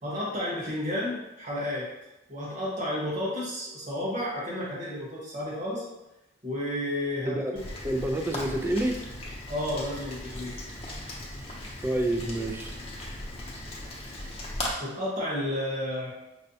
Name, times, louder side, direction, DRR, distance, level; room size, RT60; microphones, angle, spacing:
voice 1, 0.0-1.9 2.3-5.8 6.4-7.4 9.5-10.5 14.8-16.1, left 1 dB, 40° right, -5 dB, 1.2 m, -31 dB
Rain, 7.6-14.7, left 1 dB, 30° left, 0.7 m, -38 dB
voice 2, 7.8-9.0 11.8-12.7, right 1 dB, 10° right, 3 dB, 0.3 m, -28 dB
5.3 x 2.2 x 2.7 m, 0.95 s
head